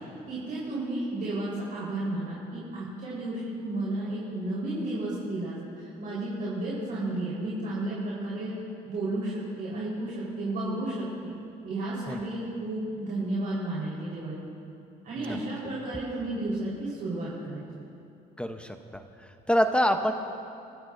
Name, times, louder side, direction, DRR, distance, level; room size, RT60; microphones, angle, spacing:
voice 1, 0.3-8.5 8.8-11.3 11.6-14.3 15.0-17.6, right 2 dB, 55° right, -7 dB, 4.4 m, -32 dB
voice 2, 18.4-19.0 19.5-20.1, equal, 5° left, 6 dB, 0.9 m, -25 dB
29.5 x 15.5 x 2.7 m, 2.6 s
cardioid pair, 110°, 17 cm